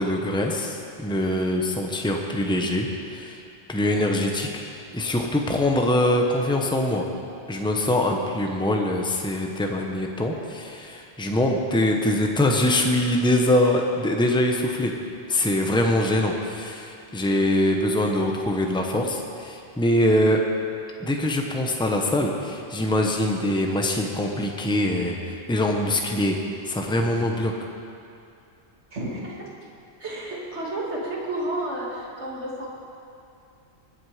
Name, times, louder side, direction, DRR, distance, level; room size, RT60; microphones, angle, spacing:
voice 1, 0.0-3.4 3.7-7.1 7.5-14.9 15.3-20.4 21.0-26.4 26.7-27.5, left 1 dB, 5° left, 2 dB, 1.0 m, -23 dB
voice 2, 28.9-29.5 30.0-32.7, right 1 dB, 80° right, -4 dB, 2.6 m, -31 dB
21.0 x 8.0 x 5.0 m, 2.6 s
omnidirectional pair, 1.1 m